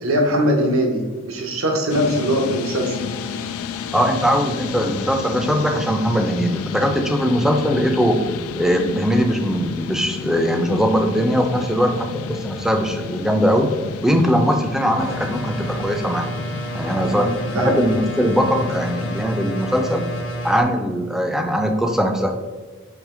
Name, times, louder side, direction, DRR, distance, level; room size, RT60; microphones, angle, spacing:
voice 1, 0.0-3.0 17.1-17.8, equal, 85° right, 2 dB, 0.7 m, -21 dB
sound 1, 1.9-19.3, left 6 dB, 90° left, 0.3 m, -32 dB
voice 2, 3.9-8.2 8.6-13.7 14.0-16.3 16.7-20.1 20.4-22.3, equal, ahead, 4 dB, 0.3 m, -20 dB
sound 2, 15.0-20.6, right 1 dB, 65° left, 0.8 m, -29 dB
4.9 x 2.9 x 3.6 m, 1.4 s
head